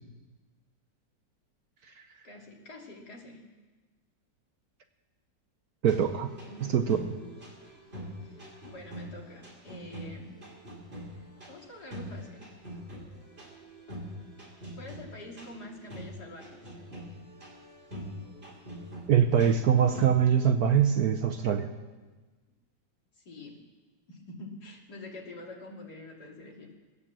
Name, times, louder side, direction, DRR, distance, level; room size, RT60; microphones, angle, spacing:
voice 1, 2.2-3.4 6.5-6.9 8.2-10.4 11.1-12.5 14.8-16.7 23.1-23.6 24.1-26.7, left 1 dB, 60° left, -1 dB, 3.0 m, -46 dB
voice 2, 5.8-6.3 6.7-7.0 19.1-21.7, right 8 dB, 65° right, 6 dB, 1.1 m, -23 dB
sound 1, 5.9-20.3, equal, 30° right, 3.9 m, -44 dB
20.5 x 9.4 x 7.4 m, 1.3 s
omnidirectional pair, 2.0 m